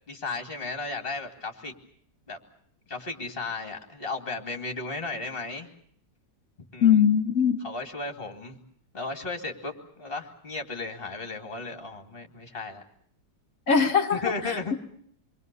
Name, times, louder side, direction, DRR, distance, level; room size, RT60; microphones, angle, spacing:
voice 1, 0.1-1.7 2.3-2.4 2.9-5.7 6.7-7.0 7.6-8.6 8.9-12.8 14.1-14.7, left 3 dB, 30° left, 5 dB, 2.7 m, -35 dB
voice 2, 6.8-7.6 13.7-14.8, left 7 dB, 50° left, 7 dB, 2.1 m, -22 dB
28.5 x 22.5 x 6.8 m, 0.66 s
omnidirectional pair, 1.9 m